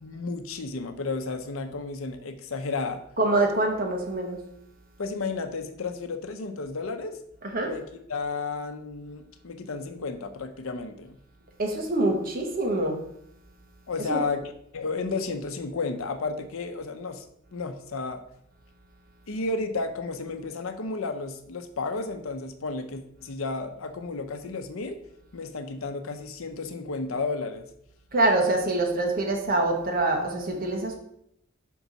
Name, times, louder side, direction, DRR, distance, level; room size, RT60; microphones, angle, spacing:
voice 1, 0.0-3.0 5.0-7.2 7.6-11.2 13.9-17.2 17.5-18.2 19.3-25.0 25.3-27.7, left 3 dB, 85° left, 8 dB, 0.7 m, -32 dB
voice 2, 3.2-4.4 7.4-7.7 11.6-13.0 14.1-14.2 28.1-30.9, right 2 dB, 45° right, 2 dB, 1.1 m, -25 dB
6.0 x 4.6 x 4.0 m, 0.76 s
head